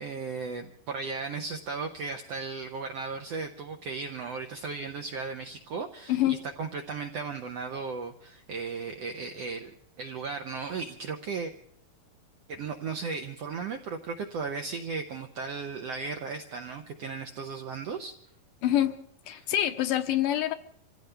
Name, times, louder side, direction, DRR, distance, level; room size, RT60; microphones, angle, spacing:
voice 1, 0.0-11.5 12.5-18.1 19.4-19.5, right 4 dB, 75° right, 5 dB, 1.4 m, -36 dB
voice 2, 6.1-6.4 18.6-19.0 19.3-20.5, left 12 dB, 75° left, 8 dB, 2.4 m, -26 dB
26.5 x 16.0 x 3.4 m, 0.64 s
omnidirectional pair, 4.0 m